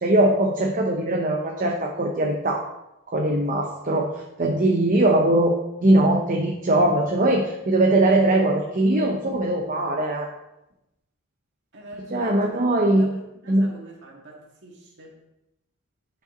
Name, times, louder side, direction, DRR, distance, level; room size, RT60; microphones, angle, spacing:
voice 1, 0.0-2.7 3.1-10.3 12.1-13.2 13.5-13.7, right 1 dB, 40° right, 1 dB, 0.8 m, -21 dB
voice 2, 11.7-12.6 13.0-15.1, right 1 dB, 55° right, -1 dB, 2.1 m, -44 dB
11.0 x 5.5 x 3.9 m, 0.92 s
head